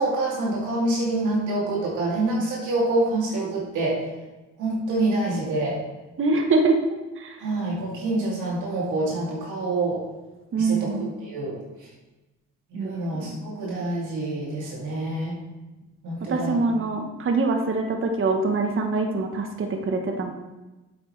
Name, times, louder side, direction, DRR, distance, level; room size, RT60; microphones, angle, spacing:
voice 1, 0.0-4.0 4.6-5.8 7.4-10.0 10.5-11.6 12.7-15.3 16.0-16.6, right 2 dB, 80° right, -4 dB, 2.6 m, -26 dB
voice 2, 6.2-6.8 7.2-7.4 10.5-11.1 12.7-13.0 13.3-13.4 16.3-20.3, right 3 dB, 45° right, 4 dB, 1.1 m, -24 dB
8.3 x 8.1 x 3.2 m, 1.1 s
cardioid pair, 90°, 30 cm